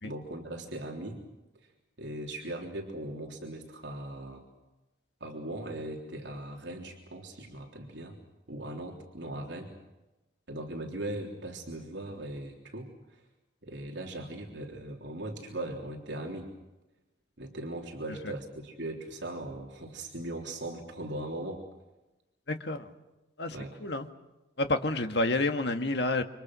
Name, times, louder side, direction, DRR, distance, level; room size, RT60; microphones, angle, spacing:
voice 1, 0.0-1.2 1.5-1.7 2.0-4.4 5.2-8.2 8.5-9.7 10.5-13.2 13.6-16.5 17.4-21.6 23.5-23.7, right 1 dB, 70° right, 0 dB, 3.6 m, -39 dB
voice 2, 22.5-22.9 23.4-23.6 23.8-24.1 24.6-26.2, left 2 dB, 65° left, 6 dB, 1.8 m, -29 dB
29.0 x 25.0 x 6.3 m, 1.0 s
head